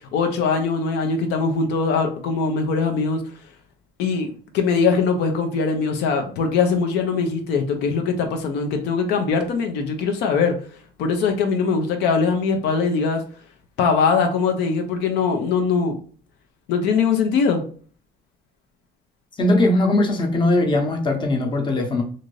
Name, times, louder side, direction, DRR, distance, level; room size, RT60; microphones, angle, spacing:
voice 1, 0.1-3.2 4.0-10.5 11.0-13.2 13.8-16.0 16.7-17.6, left 5 dB, 80° left, 5 dB, 0.6 m, -21 dB
voice 2, 19.4-22.0, left 2 dB, 30° left, 2 dB, 0.8 m, -20 dB
2.6 x 2.5 x 3.0 m, 0.43 s
cardioid pair, 110°, 17 cm